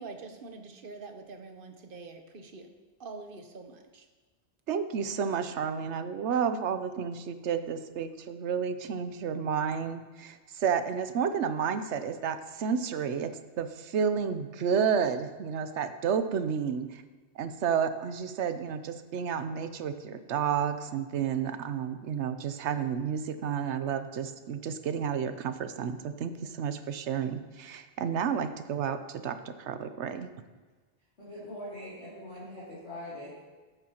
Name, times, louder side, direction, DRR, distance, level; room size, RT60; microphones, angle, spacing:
voice 1, 0.0-2.7 3.0-4.1, right 4 dB, 50° right, 5 dB, 1.1 m, -45 dB
voice 2, 4.7-17.0 17.4-30.3, right 7 dB, 80° right, 10 dB, 1.0 m, -31 dB
voice 3, 31.2-33.4, left 1 dB, 70° left, -11 dB, 3.0 m, -42 dB
13.5 x 9.8 x 2.9 m, 1.3 s
omnidirectional pair, 1.2 m